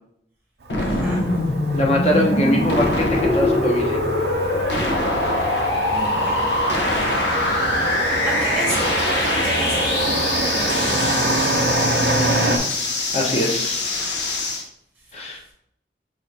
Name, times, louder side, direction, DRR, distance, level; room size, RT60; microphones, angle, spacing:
sound 1, 0.7-14.6, left 2 dB, 80° left, 0.7 m, -23 dB
voice 1, 0.7-1.2 5.9-6.7 8.2-11.2, equal, ahead, -5 dB, 0.8 m, -32 dB
Motor vehicle (road), 0.7-12.6, right 2 dB, 65° right, 0.6 m, -25 dB
voice 2, 1.7-4.0 12.2-12.6 13.1-13.9 15.1-15.4, left 1 dB, 35° left, 0 dB, 0.7 m, -23 dB
5.3 x 2.5 x 3.2 m, 0.72 s
head